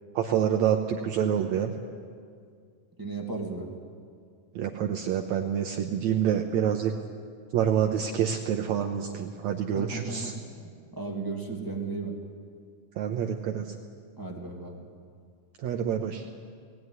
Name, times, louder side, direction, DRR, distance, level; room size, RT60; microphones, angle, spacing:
voice 1, 0.2-1.7 4.6-6.9 7.5-10.3 13.0-13.7 15.6-16.2, right 9 dB, 75° right, 4 dB, 1.8 m, -27 dB
voice 2, 3.0-3.8 9.7-10.3 10.9-12.1 14.2-14.8, right 3 dB, 10° right, 0 dB, 1.4 m, -35 dB
19.0 x 16.0 x 9.6 m, 2.2 s
omnidirectional pair, 3.9 m